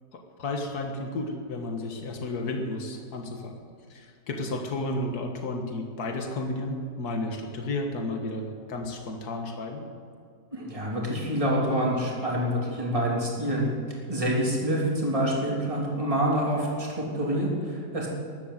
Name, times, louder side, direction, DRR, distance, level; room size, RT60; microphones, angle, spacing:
voice 1, 0.1-3.6 3.9-9.8, left 2 dB, 65° left, 3 dB, 2.1 m, -32 dB
voice 2, 10.5-13.6 14.1-18.1, equal, 20° right, -4 dB, 3.3 m, -27 dB
14.5 x 11.5 x 7.7 m, 2.3 s
omnidirectional pair, 1.8 m